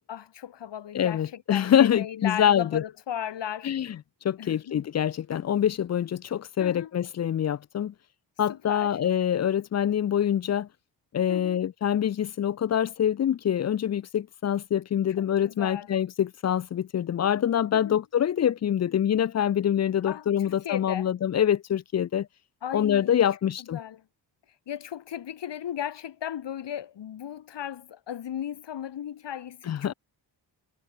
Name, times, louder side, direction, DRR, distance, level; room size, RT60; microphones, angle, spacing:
voice 1, 0.1-3.7 4.4-4.8 6.6-6.9 8.5-9.0 11.3-11.6 15.2-15.9 17.7-18.0 20.1-21.1 22.6-23.2 23.7-24.0 24.7-29.9, left 10 dB, 70° left, 2.4 m, -36 dB
voice 2, 0.9-2.8 3.6-4.0 4.2-7.9 8.4-10.7 11.1-22.3 22.7-23.8 29.7-29.9, left 9 dB, 40° left, 0.4 m, -25 dB
cardioid pair, 110°, 44 cm